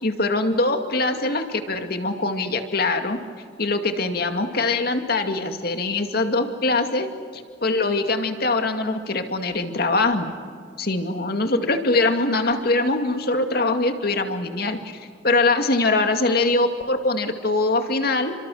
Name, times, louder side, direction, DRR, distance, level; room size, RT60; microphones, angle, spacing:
voice 1, 0.0-3.2 3.6-7.1 7.3-10.3 10.8-18.3, left 2 dB, 55° left, 6 dB, 2.4 m, -23 dB
30.0 x 26.0 x 6.4 m, 2.2 s
head